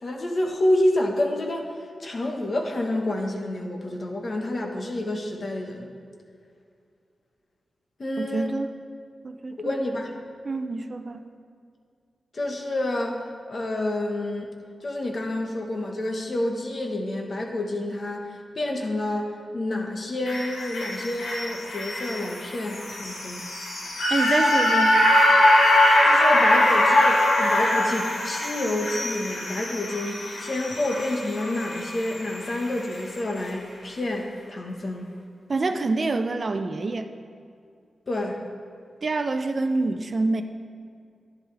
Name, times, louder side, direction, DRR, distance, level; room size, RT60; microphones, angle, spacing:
voice 1, 0.0-1.7 2.0-5.9 8.0-8.5 9.6-10.1 12.3-14.5 14.8-23.4 26.0-35.1 38.1-38.4, left 1 dB, 45° left, 2 dB, 1.3 m, -28 dB
voice 2, 8.2-8.7 9.2-9.8 10.4-11.2 24.1-25.0 35.5-37.1 39.0-40.4, right 3 dB, 45° right, 8 dB, 0.5 m, -26 dB
sound 1, 20.3-32.6 32.9-33.0, left 1 dB, 90° left, 1.9 m, -22 dB
11.5 x 10.0 x 3.4 m, 2.3 s
cardioid pair, 90°, 0 cm